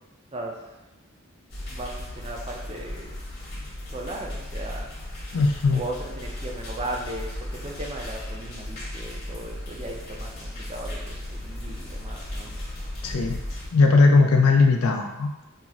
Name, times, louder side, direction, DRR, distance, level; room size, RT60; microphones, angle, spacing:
voice 1, 0.3-0.8 1.7-3.1 3.9-4.9 5.7-12.5, right 1 dB, 25° right, 0 dB, 0.4 m, -37 dB
sound 1, 1.5-13.7, left 1 dB, 45° left, 1.1 m, -36 dB
voice 2, 5.3-5.8 13.0-13.4 13.7-15.4, left 3 dB, 85° left, 3 dB, 0.5 m, -19 dB
5.5 x 2.0 x 2.4 m, 0.99 s
head